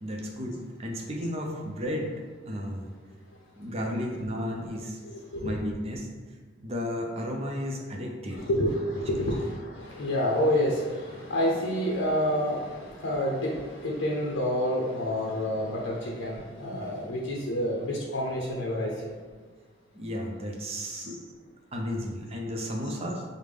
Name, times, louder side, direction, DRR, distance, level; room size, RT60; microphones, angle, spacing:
voice 1, 0.0-2.9 3.6-5.0 5.4-6.1 6.6-8.4 9.1-9.2 19.9-21.2 21.7-23.2, equal, 30° right, 0 dB, 0.5 m, -33 dB
voice 2, 5.0-5.5 8.3-19.1 20.9-21.0, equal, 85° left, -3 dB, 0.6 m, -28 dB
5.1 x 2.1 x 3.3 m, 1.4 s
head